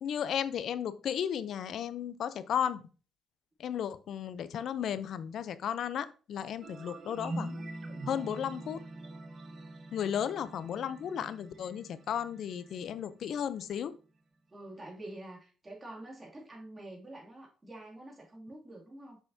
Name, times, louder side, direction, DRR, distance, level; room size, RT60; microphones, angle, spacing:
voice 1, 0.0-2.8 3.6-7.5 8.1-8.8 9.9-13.9, left 9 dB, 70° left, 14 dB, 0.5 m, -34 dB
sound 1, 6.6-13.7, right 2 dB, 50° right, 1.0 m, -44 dB
voice 2, 14.5-19.2, right 1 dB, 25° right, -3 dB, 2.5 m, -47 dB
7.2 x 5.6 x 2.7 m, 0.37 s
cardioid pair, 90°, 0 cm